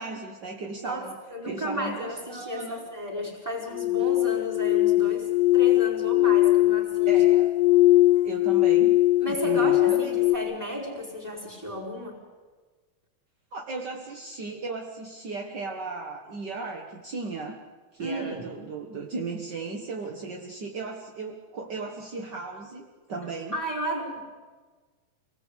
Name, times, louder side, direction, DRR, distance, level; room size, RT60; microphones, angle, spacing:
voice 1, 0.0-1.2 1.5-2.9 7.1-7.5 8.2-9.0 9.3-10.1 13.5-17.6 17.9-23.6, right 3 dB, 55° right, 1 dB, 1.2 m, -36 dB
voice 2, 0.8-7.2 9.2-12.2 18.0-18.5 23.5-24.2, equal, 5° right, -1 dB, 4.5 m, -33 dB
sound 1, 3.7-10.4, left 16 dB, 80° left, 2.5 m, -20 dB
26.5 x 19.0 x 8.3 m, 1.4 s
omnidirectional pair, 4.1 m